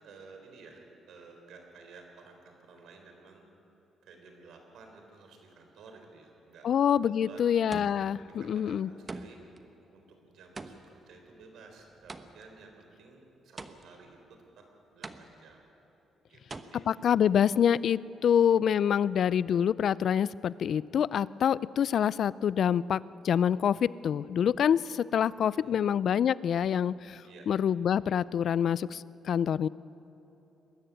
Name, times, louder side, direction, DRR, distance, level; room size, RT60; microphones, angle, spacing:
voice 1, 0.0-3.4 4.0-6.7 6.9-7.5 8.2-9.4 9.9-14.7 14.9-15.6 16.3-16.8 18.2-18.5 25.4-25.8 27.2-27.5, right 4 dB, 75° right, 4 dB, 3.7 m, -53 dB
voice 2, 6.6-8.9 16.9-27.2 27.5-29.7, left 8 dB, 60° left, 20 dB, 0.4 m, -26 dB
sound 1, 6.7-7.1 7.7-8.3 9.1-9.6 10.5-12.6 13.6-14.1 15.0-15.6 16.5-16.6, right 3 dB, 25° right, 1.1 m, -44 dB
22.0 x 13.5 x 9.3 m, 3.0 s
cardioid pair, 90°, 0 cm